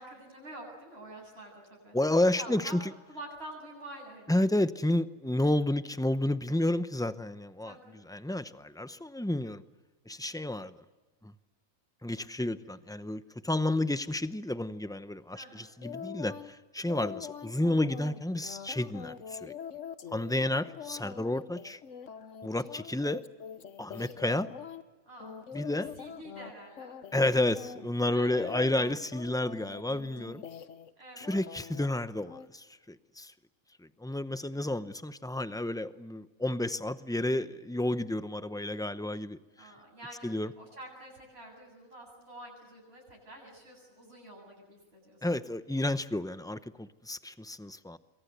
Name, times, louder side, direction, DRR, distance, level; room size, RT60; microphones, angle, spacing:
voice 1, 0.0-1.9 2.3-2.8 3.1-4.4 7.6-8.0 15.3-15.7 25.0-27.0 28.1-28.6 31.0-31.3 34.5-34.8 39.6-45.3, right 1 dB, 50° right, -2 dB, 8.4 m, -48 dB
voice 2, 1.9-2.8 4.3-7.7 8.1-9.6 10.1-10.7 11.2-11.3 12.0-19.5 20.1-21.8 22.4-23.2 23.8-24.5 25.5-25.9 27.1-30.4 31.2-33.3 34.0-39.7 40.2-40.5 45.2-48.0, left 1 dB, 5° left, 12 dB, 0.5 m, -31 dB
sound 1, 15.8-16.5 16.8-24.8 25.2-26.5 26.8-27.3 27.5-30.9 31.2-31.9 32.3-32.5, left 7 dB, 65° left, 1.4 m, -44 dB
27.0 x 23.5 x 8.1 m, 1.2 s
omnidirectional pair, 1.4 m